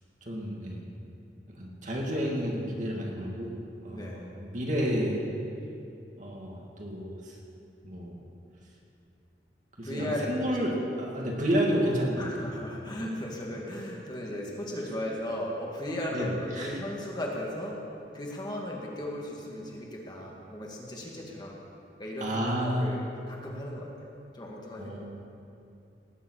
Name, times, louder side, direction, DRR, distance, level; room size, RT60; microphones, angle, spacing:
voice 1, 0.2-0.9 1.5-5.2 6.2-7.4 7.8-8.2 9.8-12.3 16.1-16.8 22.2-23.0 24.8-25.0, equal, 45° right, -2 dB, 2.6 m, -30 dB
voice 2, 9.8-10.4 12.2-17.8 18.1-21.6 22.0-22.3 22.6-23.9 24.3-25.0, left 1 dB, 25° left, -2 dB, 2.2 m, -36 dB
18.5 x 7.6 x 8.3 m, 2.7 s
head